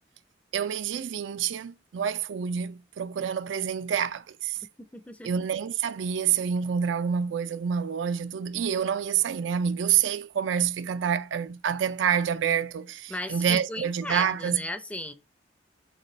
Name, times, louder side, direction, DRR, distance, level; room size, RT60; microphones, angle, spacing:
voice 1, 0.5-4.6 5.2-14.6, right 8 dB, 75° right, 0.4 m, -27 dB
voice 2, 4.9-5.3 13.1-15.1, left 1 dB, 5° left, 0.5 m, -36 dB
6.5 x 2.2 x 3.1 m
head